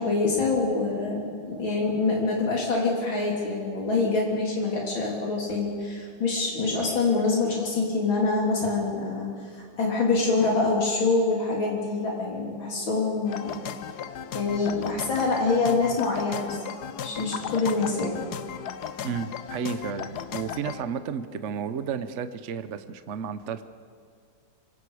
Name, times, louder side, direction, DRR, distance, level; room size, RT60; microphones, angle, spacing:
voice 1, 0.0-13.6 14.3-16.6 17.0-18.1, left 3 dB, 85° left, -2 dB, 4.0 m, -25 dB
sound 1, 13.3-20.8, left 8 dB, 60° left, 1.3 m, -36 dB
voice 2, 19.0-23.6, right 6 dB, 50° right, 11 dB, 0.9 m, -32 dB
26.5 x 24.5 x 4.9 m, 2.2 s
omnidirectional pair, 2.1 m